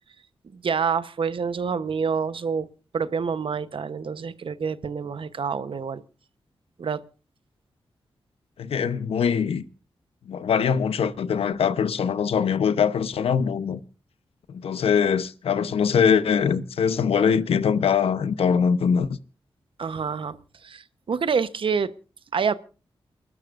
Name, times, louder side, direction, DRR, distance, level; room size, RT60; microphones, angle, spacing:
voice 1, 0.5-2.7 2.9-6.0 6.8-7.0 19.8-20.4 20.6-21.9 22.3-22.5, right 6 dB, 65° right, 0.9 m, -27 dB
voice 2, 8.6-9.6 10.3-13.8 14.5-19.2, left 7 dB, 90° left, 0.9 m, -22 dB
29.0 x 12.5 x 2.5 m
cardioid pair, 75°, 10 cm